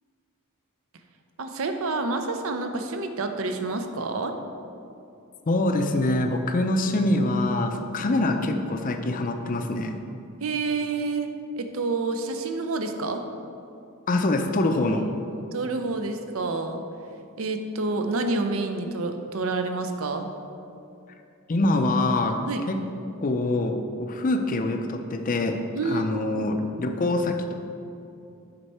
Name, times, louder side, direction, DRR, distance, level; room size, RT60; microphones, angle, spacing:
voice 1, 1.4-4.3 10.4-11.3 11.6-13.2 14.9-15.0 15.3-16.8 17.4-20.3 22.5-22.6 25.7-26.5, right 3 dB, 65° right, 6 dB, 0.6 m, -28 dB
voice 2, 5.5-10.0 14.1-15.0 21.5-22.4 22.7-22.8 23.2-25.6 25.8-27.5, left 2 dB, 40° left, 5 dB, 0.5 m, -24 dB
7.9 x 5.3 x 4.3 m, 2.7 s
head